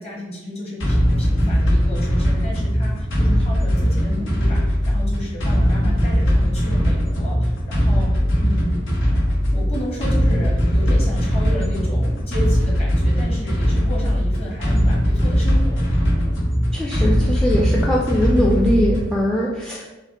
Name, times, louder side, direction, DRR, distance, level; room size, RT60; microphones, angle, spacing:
voice 1, 0.0-8.9 9.5-16.2, equal, 35° left, -3 dB, 1.2 m, -32 dB
sound 1, 0.8-19.2, equal, 85° left, 1.0 m, -19 dB
voice 2, 16.7-19.9, equal, 5° left, -3 dB, 0.4 m, -21 dB
5.5 x 2.1 x 2.9 m, 1.1 s
head